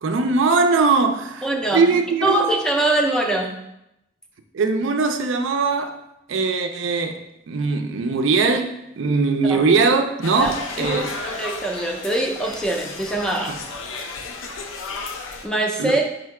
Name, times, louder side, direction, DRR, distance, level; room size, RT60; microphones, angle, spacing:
voice 1, 0.0-2.5 4.5-6.0 6.3-7.2 7.5-11.1 13.5-13.6 15.8-16.0, right 4 dB, 70° right, 0.4 m, -21 dB
voice 2, 1.4-1.8 2.2-3.5 9.4-9.6 10.4-10.5 10.8-13.5 15.4-16.0, right 2 dB, 5° left, 0.4 m, -23 dB
sound 1, 10.2-15.5, left 3 dB, 85° left, 0.5 m, -33 dB
5.0 x 2.2 x 4.7 m
head